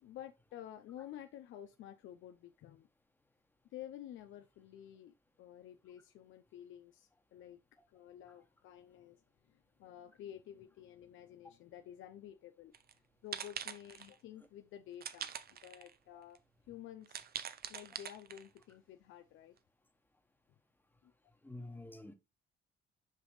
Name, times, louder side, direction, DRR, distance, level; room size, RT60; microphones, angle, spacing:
voice 1, 0.0-2.9 3.7-7.6 7.9-9.2 9.5-12.7 13.2-16.4 16.7-17.2 17.7-19.6 21.0-21.1, left 11 dB, 80° left, 0.6 m, -51 dB
sound 1, 12.7-12.9 13.3-14.1 15.0-15.9 16.3-16.4 17.1-18.6, right 8 dB, 50° right, 0.7 m, -44 dB
voice 2, 21.4-22.1, left 2 dB, 10° left, 1.3 m, -48 dB
6.6 x 5.2 x 3.1 m
cardioid pair, 90°, 20 cm